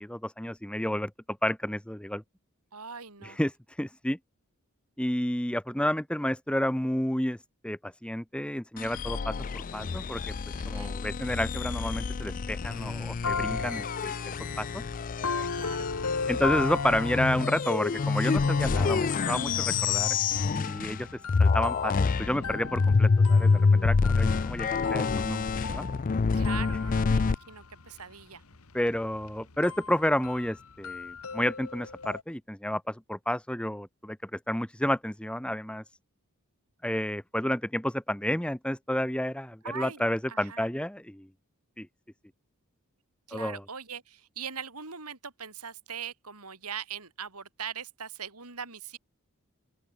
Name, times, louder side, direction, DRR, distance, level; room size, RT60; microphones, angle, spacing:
voice 1, 0.0-2.2 3.2-3.5 3.8-4.2 5.0-7.4 7.6-10.3 10.7-14.1 14.6-14.7 16.3-20.1 20.5-21.1 21.4-21.9 22.2-25.9 28.7-35.8 36.8-41.2 41.8-41.9 43.3-43.6, left 1 dB, 5° left, 1.3 m, -30 dB
voice 2, 2.7-3.4 10.7-10.9 15.5-15.9 26.3-28.4 39.6-40.0 40.3-40.7 43.3-49.0, right 7 dB, 85° right, 4.7 m, -41 dB
sound 1, 8.8-21.0 21.3-27.3, left 4 dB, 35° left, 0.4 m, -27 dB
sound 2, 13.2-32.2, left 5 dB, 75° left, 1.6 m, -38 dB
open air
head